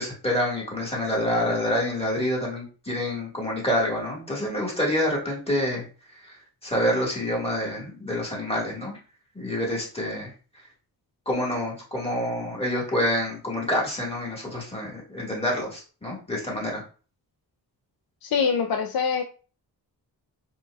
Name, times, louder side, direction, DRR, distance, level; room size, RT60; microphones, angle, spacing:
voice 1, 0.0-5.8 6.6-9.0 9.4-10.3 11.3-16.8, left 1 dB, 15° left, -3 dB, 1.8 m, -27 dB
voice 2, 18.2-19.2, left 6 dB, 60° left, 6 dB, 0.5 m, -24 dB
4.3 x 2.6 x 2.4 m, 0.37 s
cardioid pair, 55°, 42 cm